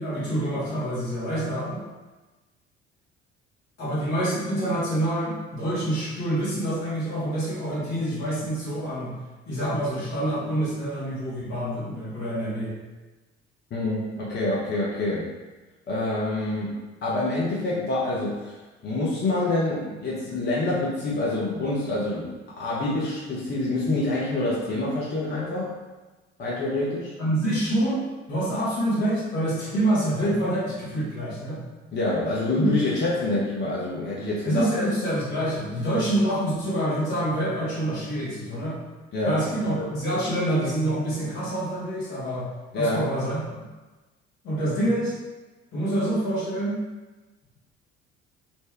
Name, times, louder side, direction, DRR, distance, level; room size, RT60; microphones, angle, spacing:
voice 1, 0.0-1.8 3.8-9.1 9.5-12.7 27.2-28.0 28.3-31.6 32.5-32.7 34.4-38.8 39.2-42.5 42.7-43.4 44.4-45.1 45.7-46.8, right 1 dB, 60° left, -8 dB, 1.3 m, -26 dB
voice 2, 13.7-15.2 15.9-16.7 17.0-18.5 18.8-22.3 22.6-25.7 26.4-27.1 31.9-34.6 39.1-39.4 39.7-39.9 42.7-43.0, left 2 dB, 35° left, -6 dB, 0.7 m, -26 dB
2.7 x 2.2 x 3.3 m, 1.2 s
figure-of-eight pair, 55°, 32 cm